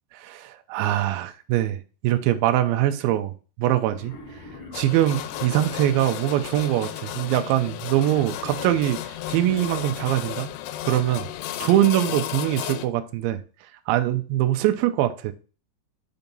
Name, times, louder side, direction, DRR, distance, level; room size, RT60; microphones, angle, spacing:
voice 1, 0.2-4.1 4.7-9.0 9.3-10.5 10.8-11.3 11.6-13.4 13.9-15.3, right 13 dB, 85° right, 2.1 m, -23 dB
Wild animals, 3.8-6.3 7.8-10.3, left 2 dB, 65° left, 1.5 m, -44 dB
sound 1, 4.7-12.9, left 13 dB, 85° left, 2.5 m, -34 dB
6.9 x 2.8 x 5.2 m
omnidirectional pair, 4.7 m